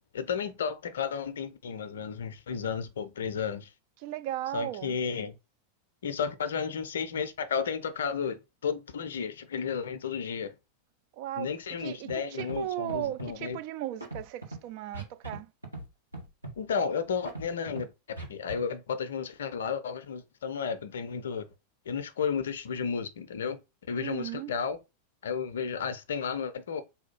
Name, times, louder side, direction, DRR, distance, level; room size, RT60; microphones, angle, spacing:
voice 1, 0.1-3.7 4.5-5.4 6.0-10.5 11.4-13.6 16.6-21.5 21.9-23.6 23.9-24.8 25.2-26.8, left 6 dB, 65° left, 0.5 m, -33 dB
voice 2, 4.0-5.0 11.1-15.5 24.0-24.6, right 13 dB, 45° right, 0.3 m, -36 dB
Scratching (performance technique), 12.1-12.2 12.4-12.6 12.9-13.3 14.0-14.6 14.9-15.4 15.6-15.9 16.1-16.6 17.2-17.8 18.2-18.5, right 2 dB, 85° right, 1.1 m, -39 dB
3.4 x 2.3 x 4.3 m
figure-of-eight pair, 90°, 0 cm